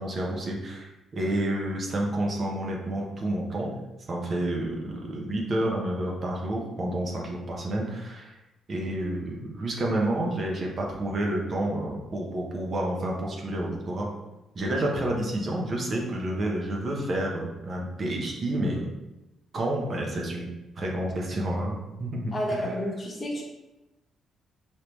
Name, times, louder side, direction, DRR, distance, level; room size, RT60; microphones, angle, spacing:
voice 1, 0.0-3.7 4.1-8.3 8.7-14.1 14.5-18.9 19.5-20.5 20.8-22.7, right 1 dB, 45° right, -1 dB, 0.7 m, -29 dB
voice 2, 22.3-23.4, equal, 30° left, -2 dB, 1.0 m, -30 dB
3.4 x 2.7 x 3.0 m, 0.99 s
cardioid pair, 90°, 0 cm